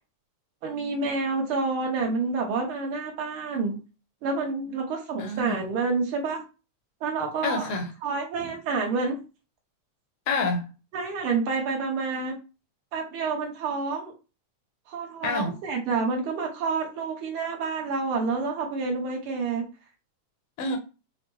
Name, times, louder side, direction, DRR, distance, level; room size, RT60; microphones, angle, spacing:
voice 1, 0.6-3.8 4.2-6.4 7.0-7.7 8.0-9.2 10.9-12.4 12.9-14.1 14.9-19.7, right 4 dB, 65° right, 1.3 m, -28 dB
voice 2, 5.2-5.6 7.4-7.9 8.4-8.5 10.3-10.7 15.2-15.6 20.6-20.8, left 2 dB, 70° left, 1.6 m, -28 dB
6.1 x 2.1 x 3.1 m
omnidirectional pair, 3.5 m